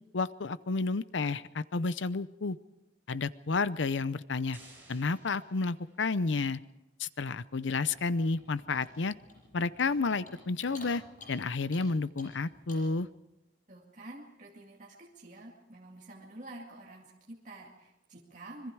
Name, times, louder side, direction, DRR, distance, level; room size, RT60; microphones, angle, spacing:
voice 1, 0.1-2.6 3.1-4.6 4.9-6.6 7.0-9.1 9.5-11.0 11.3-13.1, left 4 dB, 80° left, 16 dB, 0.7 m, -31 dB
sound 1, 4.5-6.3, right 2 dB, 10° right, 7.8 m, -57 dB
Clock, 7.5-13.0, left 2 dB, 45° left, 8.0 m, -54 dB
voice 2, 13.7-18.7, right 1 dB, 40° right, -2 dB, 2.3 m, -48 dB
25.5 x 22.0 x 4.7 m, 0.97 s
head